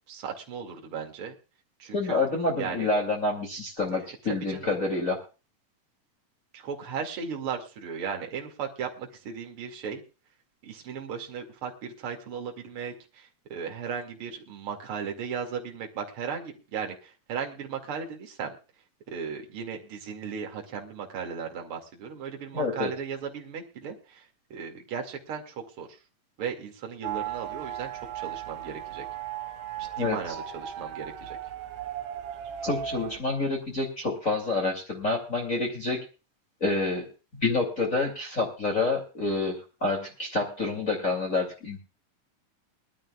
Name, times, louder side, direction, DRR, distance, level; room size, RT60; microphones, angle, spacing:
voice 1, 0.1-1.3 1.8-2.2 2.6-2.9 3.9-4.7 6.5-10.0 10.6-18.5 19.1-26.0 26.4-29.0 29.8-31.4, right 6 dB, 45° right, 2 dB, 2.8 m, -36 dB
voice 2, 1.9-5.2 22.5-22.9 30.0-30.2 32.6-36.0 36.6-41.8, left 3 dB, 25° left, -1 dB, 2.5 m, -28 dB
sound 1, 27.0-33.2, right 10 dB, 85° right, 3.2 m, -36 dB
22.0 x 12.5 x 2.4 m, 0.33 s
omnidirectional pair, 4.0 m